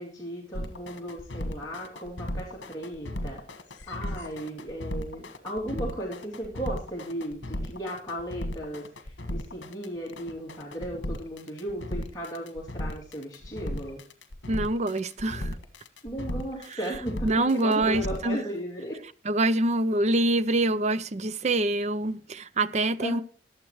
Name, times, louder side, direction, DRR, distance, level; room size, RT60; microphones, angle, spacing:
voice 1, 0.0-3.4 3.9-14.0 16.0-19.0 23.0-23.2, right 1 dB, 20° left, 2.7 m, -36 dB
sound 1, 0.5-18.3, left 1 dB, 75° left, 1.5 m, -35 dB
voice 2, 14.5-15.6 17.2-18.4 19.2-23.2, right 2 dB, 40° right, 0.5 m, -25 dB
21.5 x 7.5 x 3.1 m
head